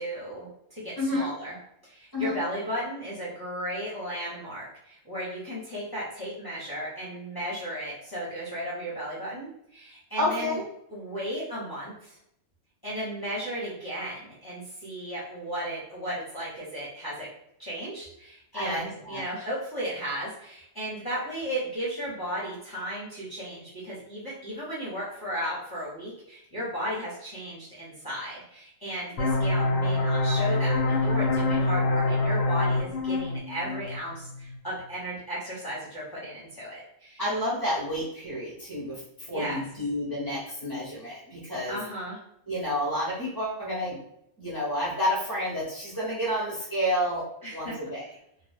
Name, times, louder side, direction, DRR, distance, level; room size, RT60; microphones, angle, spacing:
voice 1, 0.0-1.5 1.8-10.6 10.9-12.2 12.8-17.3 17.6-37.2 39.3-39.6 41.7-42.2 47.4-47.7, equal, 20° left, -7 dB, 0.8 m, -35 dB
voice 2, 1.0-1.3 2.1-2.4 10.2-10.7 18.5-19.2 29.3-29.4 37.2-39.0 39.3-41.8 42.5-44.0 44.4-47.2 47.5-48.0, equal, 20° right, -7 dB, 0.7 m, -30 dB
sound 1, 29.2-34.6, left 2 dB, 60° left, 0.7 m, -25 dB
2.4 x 2.2 x 3.3 m, 0.76 s
omnidirectional pair, 1.3 m